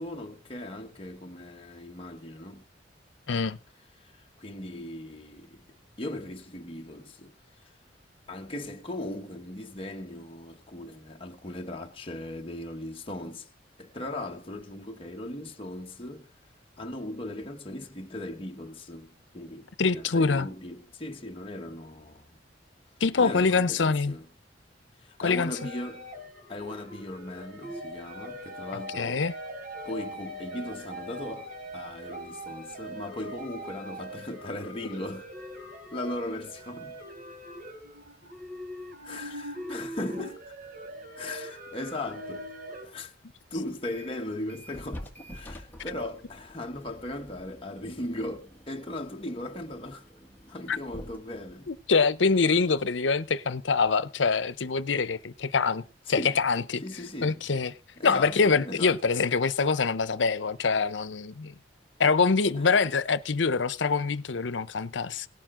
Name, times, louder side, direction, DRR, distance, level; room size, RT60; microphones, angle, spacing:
voice 1, 0.0-2.6 4.0-7.3 8.3-13.5 13.8-16.3 16.8-22.4 23.1-24.3 25.0-26.1 26.5-29.3 29.8-35.3 35.9-37.0 39.0-40.5 41.2-42.5 42.8-43.1 43.5-50.1 50.5-51.7 56.1-56.4 56.8-57.5 58.0-59.0 62.5-62.7, left 1 dB, 30° left, 1.2 m, -38 dB
voice 2, 3.3-3.6 19.8-20.5 23.0-24.1 25.2-25.5 29.0-29.3 50.7-50.8 51.7-56.8 57.2-57.7 58.0-61.5 62.0-65.3, left 4 dB, 75° left, 0.7 m, -25 dB
sound 1, 25.5-42.8, equal, 50° right, 3.9 m, -41 dB
sound 2, 43.7-44.2 44.5-53.0, equal, 10° left, 1.7 m, -47 dB
18.0 x 10.5 x 3.8 m
head